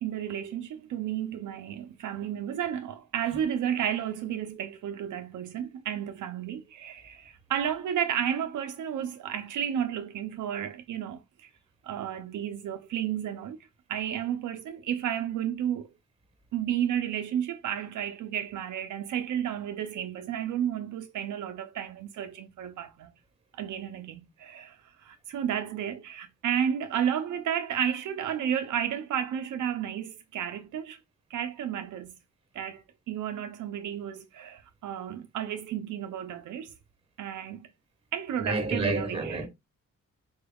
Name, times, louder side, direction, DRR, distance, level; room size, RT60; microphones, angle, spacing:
voice 1, 0.0-11.5 11.8-13.6 13.9-15.9 16.5-23.1 23.5-31.0 31.3-32.1 32.5-36.7 37.2-37.7 38.1-39.5, right 9 dB, 70° right, 0.5 m, -32 dB
voice 2, 38.4-39.5, right 2 dB, 20° right, 1.3 m, -29 dB
4.5 x 2.3 x 3.4 m
cardioid pair, 140°, 31 cm